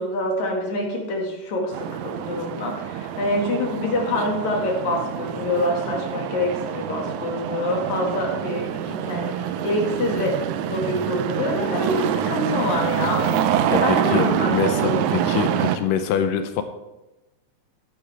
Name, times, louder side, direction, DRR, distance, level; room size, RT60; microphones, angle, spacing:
voice 1, 0.0-13.5 13.8-15.1, left 1 dB, 60° left, 0 dB, 3.2 m, -26 dB
sound 1, 1.7-15.8, right 9 dB, 75° right, 1.9 m, -26 dB
voice 2, 13.7-16.6, left 8 dB, 85° left, 8 dB, 2.4 m, -25 dB
13.5 x 9.5 x 3.4 m, 0.99 s
omnidirectional pair, 3.8 m